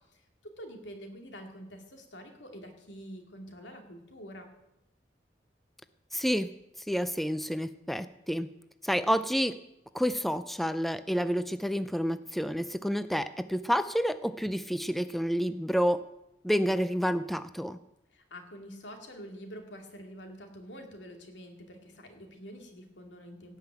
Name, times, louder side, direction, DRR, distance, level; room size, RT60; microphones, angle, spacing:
voice 1, 0.1-4.5 18.1-23.6, equal, 80° left, 4 dB, 2.6 m, -46 dB
voice 2, 6.1-6.5 6.9-8.5 8.8-9.6 9.9-16.0 16.4-17.8, equal, ahead, 12 dB, 0.4 m, -29 dB
17.5 x 5.8 x 8.9 m, 0.89 s
head